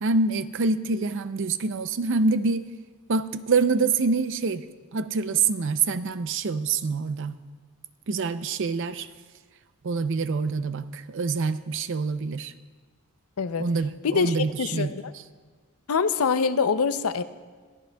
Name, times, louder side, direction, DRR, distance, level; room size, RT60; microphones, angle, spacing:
voice 1, 0.0-2.6 3.1-4.6 4.9-7.4 8.1-9.1 9.8-12.5 13.6-14.9, right 4 dB, 60° right, 12 dB, 0.5 m, -26 dB
voice 2, 13.4-13.7 14.0-15.1 15.9-17.2, left 5 dB, 80° left, 11 dB, 0.6 m, -25 dB
22.0 x 15.5 x 2.3 m, 1.4 s
head